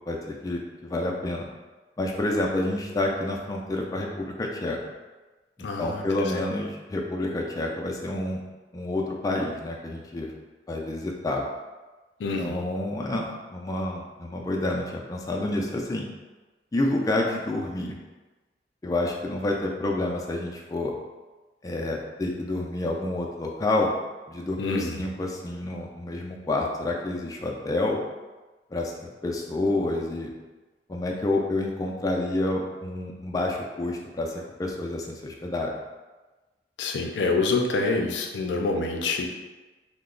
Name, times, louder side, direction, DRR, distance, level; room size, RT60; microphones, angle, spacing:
voice 1, 0.1-1.5 2.0-4.8 5.6-8.4 8.7-10.3 10.7-11.4 12.4-16.1 16.7-18.0 18.8-20.9 21.6-23.9 24.3-28.0 28.7-30.3 30.9-35.7, left 2 dB, 20° left, -1 dB, 0.3 m, -28 dB
voice 2, 5.6-6.5 12.2-12.6 24.6-25.1 36.8-39.3, left 3 dB, 90° left, 3 dB, 0.4 m, -27 dB
2.9 x 2.0 x 3.7 m, 1.2 s
head